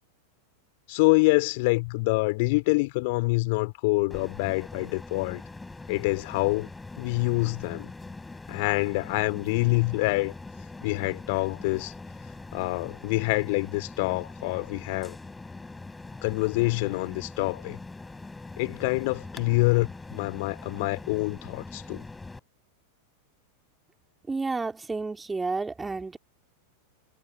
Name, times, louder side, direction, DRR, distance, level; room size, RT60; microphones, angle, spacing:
voice 1, 0.9-5.4 5.9-6.7 7.0-7.9 8.5-10.3 10.8-11.9 12.5-15.2 16.2-17.8 18.6-22.0, left 26 dB, 50° left, 3.7 m, -26 dB
sound 1, 4.1-22.4, left 3 dB, 10° left, 6.7 m, -42 dB
voice 2, 24.3-26.2, right 3 dB, 10° right, 3.8 m, -31 dB
figure-of-eight pair, 90°, 0 cm